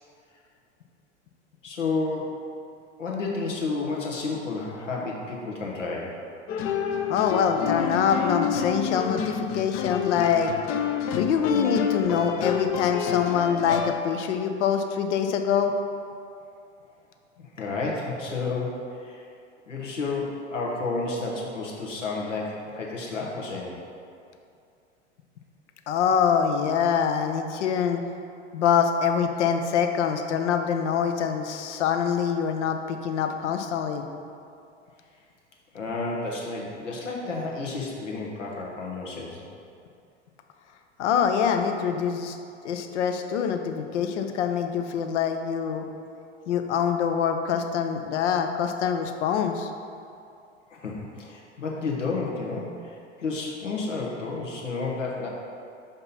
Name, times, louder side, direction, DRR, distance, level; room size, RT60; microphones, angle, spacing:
voice 1, 1.6-2.4 3.0-6.2 17.4-19.3 19.7-23.8 35.7-39.4 50.7-55.3, left 3 dB, 90° left, -2 dB, 1.3 m, -31 dB
sound 1, 6.5-14.0, left 7 dB, 35° left, 0.5 m, -28 dB
voice 2, 7.1-10.5 11.1-15.7 25.9-28.0 28.5-34.0 41.0-42.4 42.6-45.8 46.5-49.7, left 7 dB, 70° left, 6 dB, 0.7 m, -25 dB
5.8 x 5.2 x 4.1 m, 2.5 s
hypercardioid pair, 95°, 36 cm